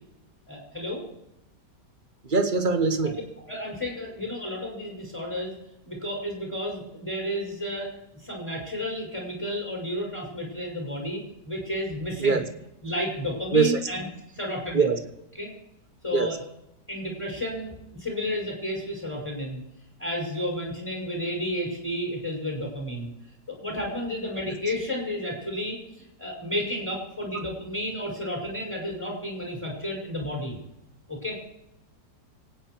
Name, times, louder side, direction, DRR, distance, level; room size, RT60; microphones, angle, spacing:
voice 1, 0.5-1.0 3.0-3.1 3.5-5.5 5.9-7.9 8.2-12.4 12.8-14.1 14.3-15.0 15.3-15.5 16.0-16.4 16.9-17.7 18.0-19.6 20.0-23.1 23.5-30.6 31.1-31.4, left 1 dB, 5° left, -1 dB, 5.5 m, -32 dB
voice 2, 2.3-3.2 12.2-12.4 13.5-13.7 14.7-15.0 16.1-16.3, right 4 dB, 30° right, 6 dB, 1.2 m, -21 dB
25.0 x 9.3 x 4.6 m, 0.85 s
omnidirectional pair, 1.8 m